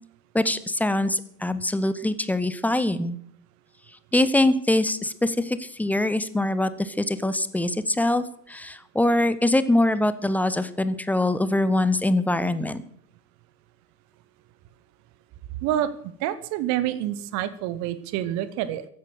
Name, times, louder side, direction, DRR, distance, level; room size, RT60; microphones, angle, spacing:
voice 1, 0.3-3.2 4.1-12.8, left 1 dB, 5° left, 14 dB, 0.7 m, -23 dB
voice 2, 15.6-18.9, right 12 dB, 35° right, 14 dB, 1.0 m, -27 dB
15.0 x 11.0 x 6.6 m, 0.67 s
figure-of-eight pair, 90°, 48 cm